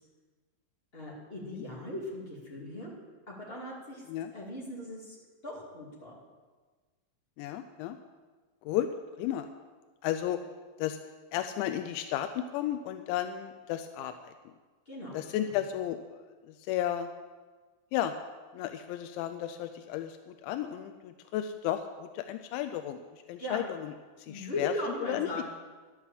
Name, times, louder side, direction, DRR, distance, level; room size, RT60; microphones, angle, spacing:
voice 1, 0.9-2.9 3.3-4.0 4.3-5.2 5.4-6.1 14.8-15.5 23.4-23.6 24.3-25.4, left 1 dB, 25° left, -4 dB, 1.3 m, -38 dB
voice 2, 7.4-8.0 8.6-8.9 9.2-9.5 10.0-10.4 10.8-11.0 11.3-14.3 15.1-17.1 17.9-18.1 18.5-23.9 24.2-24.7 25.1-25.3, left 11 dB, 90° left, 8 dB, 2.9 m, -33 dB
11.5 x 8.5 x 7.3 m, 1.4 s
omnidirectional pair, 5.2 m